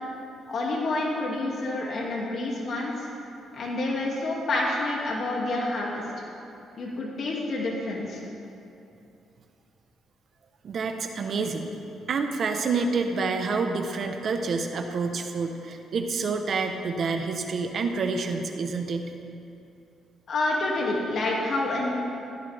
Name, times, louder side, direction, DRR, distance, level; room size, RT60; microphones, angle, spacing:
voice 1, 0.5-2.9 3.5-6.0 6.8-8.2 20.3-21.9, left 2 dB, 55° left, -3 dB, 2.6 m, -28 dB
voice 2, 10.6-11.7 12.1-19.1, right 4 dB, 55° right, 5 dB, 1.1 m, -28 dB
17.0 x 16.5 x 3.6 m, 2.7 s
cardioid pair, 90°, 0 cm